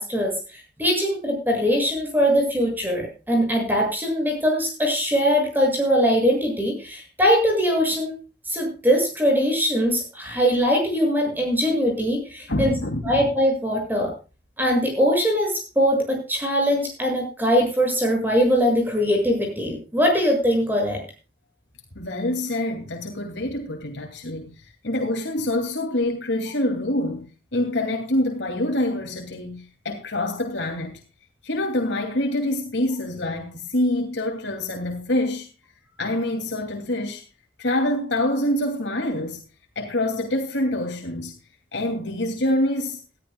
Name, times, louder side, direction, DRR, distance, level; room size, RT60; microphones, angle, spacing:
voice 1, 0.0-8.2 8.5-12.7 13.0-14.1 14.6-21.0, equal, 10° right, 7.0 m, -21 dB
voice 2, 12.5-13.2 21.9-31.0 31.4-35.5 36.0-37.2 37.6-39.4 39.8-41.4 41.7-43.0, left 1 dB, 80° left, 2.8 m, -26 dB
20.0 x 13.5 x 2.3 m
head